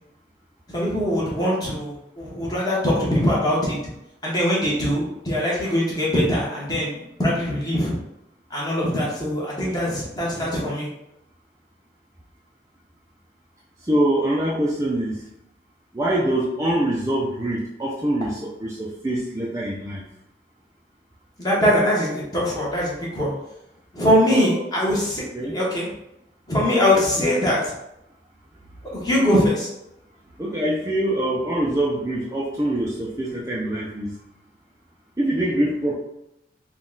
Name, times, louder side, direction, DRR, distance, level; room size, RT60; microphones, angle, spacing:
voice 1, 0.7-3.8 4.2-7.9 8.5-10.9 21.4-23.3 23.9-25.2 25.5-25.9 26.5-27.7 28.9-29.7, left 1 dB, 20° left, -6 dB, 1.2 m, -22 dB
voice 2, 13.9-15.2 15.9-20.0 24.3-24.6 25.3-25.6 30.4-34.2 35.2-35.9, right 1 dB, 15° right, -5 dB, 0.4 m, -24 dB
3.9 x 2.4 x 3.8 m, 0.84 s
head